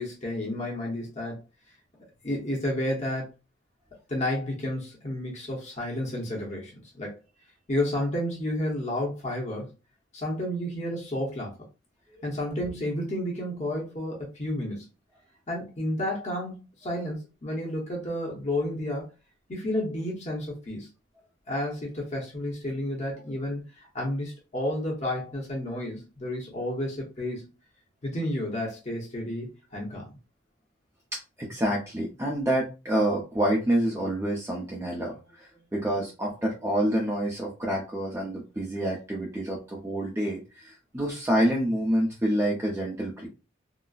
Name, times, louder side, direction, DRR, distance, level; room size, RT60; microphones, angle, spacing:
voice 1, 0.0-1.4 2.2-3.3 4.1-7.2 7.7-9.7 10.1-11.5 12.2-14.9 15.5-19.1 19.5-20.9 21.5-27.5 28.0-30.1, left 1 dB, 35° left, -2 dB, 0.9 m, -31 dB
voice 2, 31.1-43.3, right 1 dB, 15° right, -2 dB, 0.5 m, -27 dB
3.9 x 2.1 x 2.3 m, 0.30 s
head